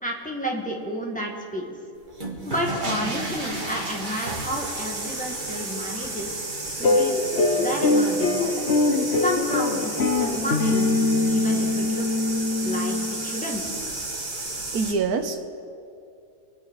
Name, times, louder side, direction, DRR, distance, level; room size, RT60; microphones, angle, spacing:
voice 1, 0.0-1.7 2.4-6.4 6.8-7.1 7.6-8.5 9.2-12.2 12.6-13.0 13.2-13.6, equal, 5° left, -1 dB, 2.0 m, -31 dB
sound 1, 2.0-14.9, right 2 dB, 30° right, 1.8 m, -32 dB
sound 2, 6.8-13.4, left 2 dB, 45° left, 1.2 m, -23 dB
voice 2, 14.7-15.5, right 4 dB, 75° right, 9 dB, 1.4 m, -25 dB
24.5 x 9.6 x 4.8 m, 2.5 s
omnidirectional pair, 1.6 m